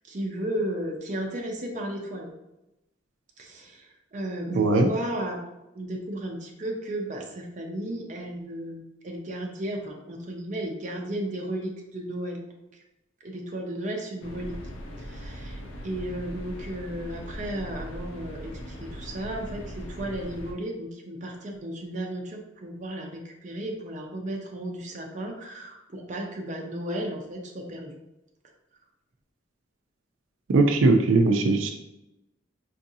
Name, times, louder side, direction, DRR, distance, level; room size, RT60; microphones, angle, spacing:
voice 1, 0.1-2.3 3.4-5.4 5.7-12.4 13.2-14.6 15.0-27.9, right 1 dB, 40° right, 0 dB, 0.5 m, -34 dB
voice 2, 4.5-4.9 30.5-31.7, right 3 dB, 90° right, 4 dB, 0.4 m, -20 dB
sound 1, 14.2-20.5, equal, 85° left, 0.5 m, -39 dB
4.6 x 2.6 x 2.6 m, 0.92 s
head